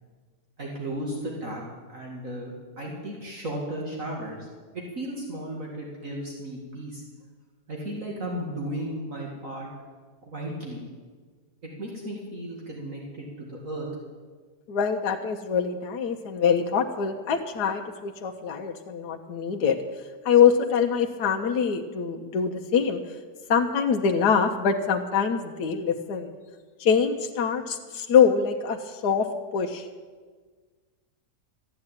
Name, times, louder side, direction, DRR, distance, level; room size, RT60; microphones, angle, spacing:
voice 1, 0.6-1.6 1.9-4.5 5.0-7.0 7.7-9.7 10.3-10.8 11.6-13.9, right 1 dB, 50° right, -2 dB, 2.6 m, -35 dB
voice 2, 14.7-19.8 20.2-23.2 23.5-26.3 26.8-29.3 29.5-29.9, left 7 dB, 80° left, 3 dB, 1.4 m, -24 dB
13.5 x 9.7 x 8.9 m, 1.5 s
omnidirectional pair, 1.8 m